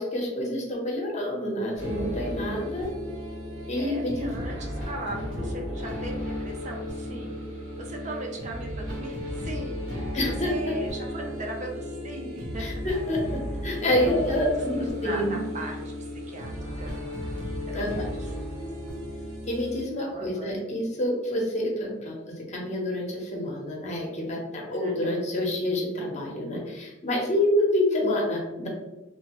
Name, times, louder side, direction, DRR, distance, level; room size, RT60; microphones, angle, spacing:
voice 1, 0.0-2.9 3.7-4.3 10.1-10.5 12.6-15.5 17.7-17.9 19.5-28.7, left 1 dB, 35° left, -1 dB, 0.7 m, -28 dB
sound 1, 1.7-19.8, left 1 dB, 85° right, 1.2 m, -34 dB
voice 2, 3.7-7.4 7.8-12.7 14.1-14.4 14.7-17.1 17.7-18.6 20.0-20.7 24.8-25.3, right 2 dB, 35° right, 1 dB, 0.4 m, -39 dB
2.7 x 2.5 x 2.9 m, 1.1 s
head